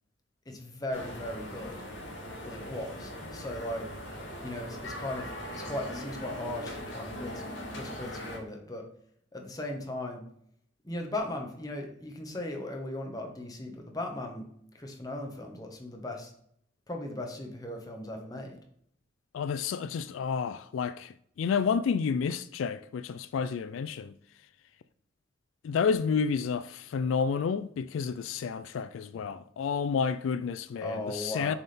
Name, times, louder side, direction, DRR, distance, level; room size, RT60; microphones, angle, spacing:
voice 1, 0.5-1.8 2.4-3.9 4.4-8.8 9.3-10.2 10.8-14.5 14.7-16.3 16.9-18.6 30.8-31.6, left 1 dB, 20° left, 1.1 m, -37 dB
sound 1, 0.9-8.4, left 1 dB, 65° left, 2.0 m, -40 dB
voice 2, 19.3-24.1 25.6-31.5, left 6 dB, 80° left, 0.3 m, -30 dB
7.0 x 3.5 x 4.2 m
head